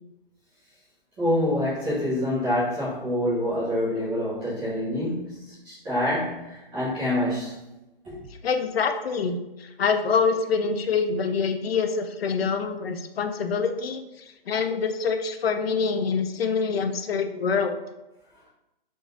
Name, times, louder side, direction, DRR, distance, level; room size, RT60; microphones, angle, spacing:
voice 1, 1.2-7.5 8.0-8.2, left 1 dB, 5° right, -13 dB, 0.6 m, -26 dB
voice 2, 8.4-17.7, left 5 dB, 90° left, 7 dB, 0.5 m, -25 dB
3.7 x 2.4 x 3.7 m, 0.99 s
hypercardioid pair, 170°, 30 cm